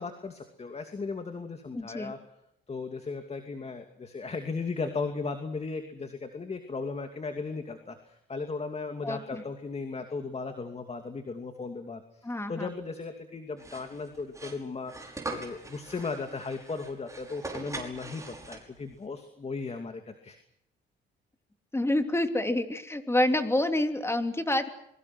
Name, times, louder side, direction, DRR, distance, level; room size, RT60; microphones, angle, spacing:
voice 1, 0.0-2.2 2.7-20.4, left 4 dB, 30° left, 6 dB, 2.7 m, -36 dB
voice 2, 1.7-2.1 9.0-9.4 12.2-12.7 21.7-24.7, left 1 dB, 15° left, 6 dB, 3.1 m, -28 dB
sound 1, 13.6-18.9, right 2 dB, 15° right, 5.7 m, -42 dB
27.0 x 23.5 x 6.2 m, 0.78 s
cardioid pair, 90°, 20 cm